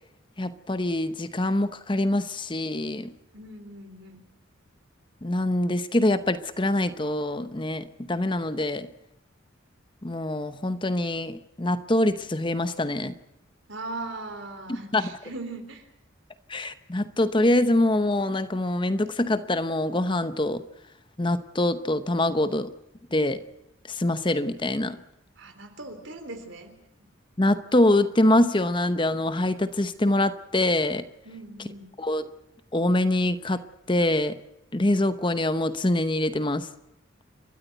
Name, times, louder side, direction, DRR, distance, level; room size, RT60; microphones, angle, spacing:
voice 1, 0.4-3.1 5.2-8.9 10.0-13.1 14.9-15.1 16.5-20.6 21.2-22.7 23.1-23.4 23.9-25.0 27.4-31.0 32.0-32.3 32.7-33.6 33.9-34.4 34.7-36.7, left 1 dB, 25° left, 12 dB, 0.8 m, -24 dB
voice 2, 3.3-4.2 13.7-15.9 25.4-26.7 31.2-32.0, right 2 dB, 70° right, 7 dB, 3.7 m, -39 dB
29.5 x 13.5 x 8.0 m, 0.88 s
head